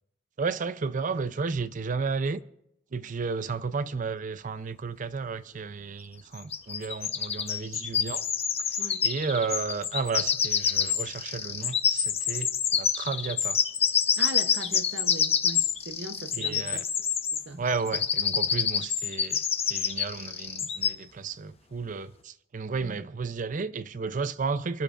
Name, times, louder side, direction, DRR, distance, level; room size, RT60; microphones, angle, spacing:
voice 1, 0.4-2.4 2.9-8.3 8.6-13.6 16.3-16.8 17.6-24.8, right 4 dB, 45° right, 0.5 m, -33 dB
sound 1, 6.4-17.4 17.7-20.9, left 7 dB, 35° left, 0.8 m, -27 dB
voice 2, 14.2-16.9 17.3-17.6 17.9-18.0, right 2 dB, 65° right, 0.9 m, -39 dB
28.0 x 12.5 x 2.5 m
head